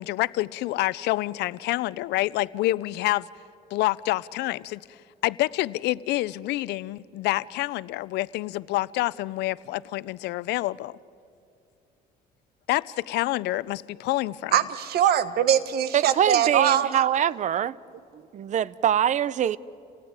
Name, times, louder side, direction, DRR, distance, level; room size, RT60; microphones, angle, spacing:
voice 1, 0.0-3.3 3.7-5.0 5.2-11.0 12.7-14.6, left 17 dB, 80° left, 0.5 m, -27 dB
voice 2, 14.5-16.9, right 10 dB, 70° right, 1.3 m, -22 dB
voice 3, 15.9-17.8 18.1-19.6, right 10 dB, 45° right, 0.6 m, -24 dB
28.0 x 17.5 x 9.7 m
cardioid pair, 110°, 17 cm